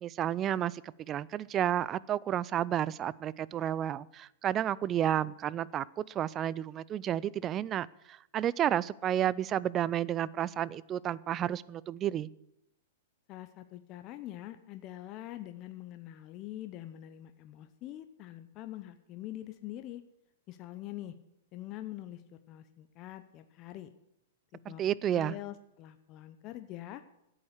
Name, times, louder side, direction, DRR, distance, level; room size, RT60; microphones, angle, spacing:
voice 1, 0.0-12.3 24.7-25.4, right 11 dB, 25° right, 21 dB, 0.4 m, -31 dB
voice 2, 13.3-20.0 20.5-21.1 21.5-22.2 22.5-23.9 24.7-24.8 25.1-27.0, left 14 dB, 35° left, 9 dB, 0.8 m, -44 dB
11.5 x 8.7 x 8.2 m, 0.81 s
hypercardioid pair, 125°, 0 cm